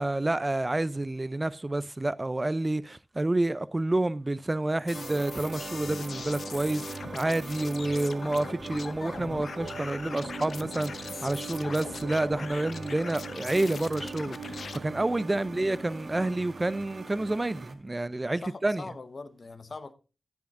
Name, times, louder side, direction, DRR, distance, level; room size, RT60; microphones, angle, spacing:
voice 1, 0.0-18.9, right 2 dB, 25° right, 0.4 m, -29 dB
sound 1, 4.9-14.8, left 5 dB, 75° left, 0.7 m, -42 dB
sound 2, 4.9-17.7, right 4 dB, 60° right, 1.3 m, -41 dB
voice 2, 18.4-19.9, left 3 dB, 50° left, 1.0 m, -43 dB
17.5 x 7.1 x 2.5 m
cardioid pair, 70°, 0 cm